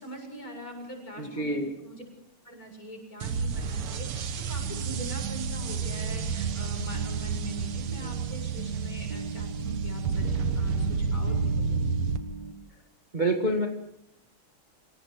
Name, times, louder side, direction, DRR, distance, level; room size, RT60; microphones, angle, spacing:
voice 1, 0.0-2.0 2.4-11.8, equal, 40° left, 1 dB, 8.3 m, -43 dB
voice 2, 1.2-1.8 13.1-13.7, right 1 dB, 20° right, 2 dB, 2.1 m, -27 dB
sound 1, 3.2-12.2, right 5 dB, 85° right, 2.3 m, -30 dB
sound 2, 4.6-12.5, right 6 dB, 45° right, 2.4 m, -39 dB
26.5 x 18.0 x 7.9 m, 0.81 s
omnidirectional pair, 2.4 m